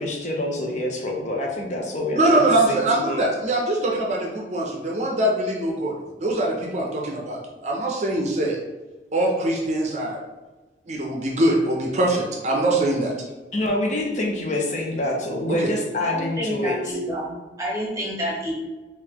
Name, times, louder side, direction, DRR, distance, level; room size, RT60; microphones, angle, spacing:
voice 1, 0.0-3.2 13.5-17.0, left 1 dB, 40° left, 0 dB, 0.5 m, -26 dB
voice 2, 2.1-8.6 9.1-10.2 10.9-13.1 15.5-15.7, right 1 dB, 40° right, -1 dB, 0.5 m, -23 dB
voice 3, 16.0-18.5, equal, 20° right, -3 dB, 0.9 m, -29 dB
3.9 x 2.5 x 2.8 m, 1.2 s
head